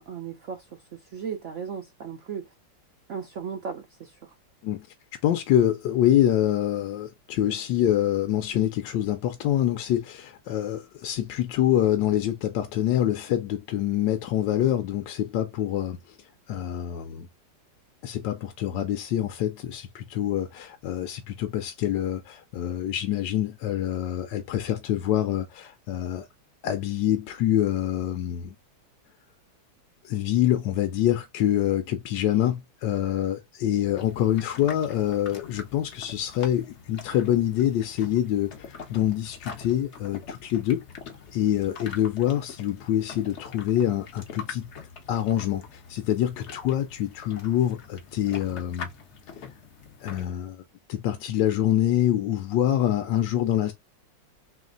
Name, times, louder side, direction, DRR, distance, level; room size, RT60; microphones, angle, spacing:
voice 1, 0.0-2.5 3.1-4.3, right 6 dB, 75° right, 0.6 m, -36 dB
voice 2, 5.2-16.2 16.5-17.3 18.0-26.3 26.6-28.5 30.0-40.8 41.3-44.7 45.1-48.9 50.0-50.6 50.9-53.7, left 11 dB, 75° left, 1.2 m, -26 dB
sound 1, 34.0-50.3, left 5 dB, 55° left, 0.8 m, -44 dB
3.2 x 3.1 x 3.7 m
omnidirectional pair, 2.0 m